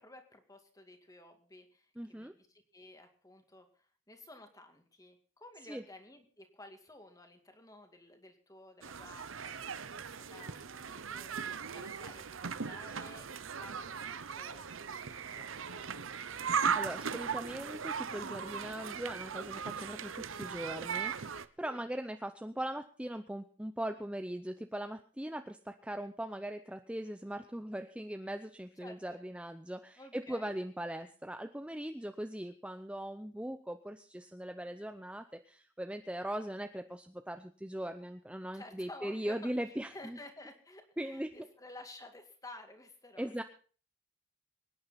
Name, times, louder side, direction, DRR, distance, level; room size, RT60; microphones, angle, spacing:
voice 1, 0.0-9.6 10.0-13.3 13.6-15.9 21.6-21.9 28.8-29.2 30.0-30.5 38.5-39.5 39.9-43.3, left 2 dB, 15° left, 6 dB, 2.3 m, -53 dB
voice 2, 2.0-2.3 5.7-5.8 16.7-40.2 41.0-41.3 43.2-43.4, right 1 dB, 5° right, 8 dB, 0.6 m, -40 dB
sound 1, 8.8-21.5, right 6 dB, 75° right, 0.9 m, -38 dB
24.5 x 10.0 x 4.2 m, 0.41 s
head